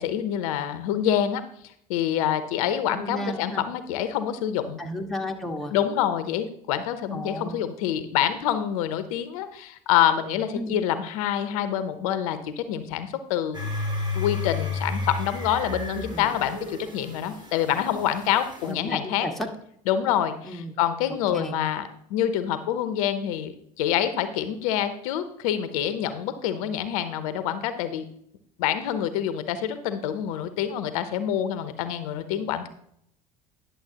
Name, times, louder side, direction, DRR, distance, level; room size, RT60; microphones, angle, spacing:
voice 1, 0.0-1.4 1.9-4.8 5.7-13.7 14.1-19.3 19.9-28.1 28.6-32.7, left 10 dB, 75° left, 11 dB, 0.7 m, -26 dB
voice 2, 2.9-3.6 4.8-5.7 7.1-7.6 10.6-10.8 16.1-16.3 18.6-19.3 20.4-20.7 21.3-21.6, left 1 dB, ahead, 1 dB, 1.5 m, -33 dB
sound 1, 13.5-18.7, left 3 dB, 25° right, 2.3 m, -32 dB
10.5 x 6.9 x 2.9 m, 0.71 s
hypercardioid pair, 75°, 18 cm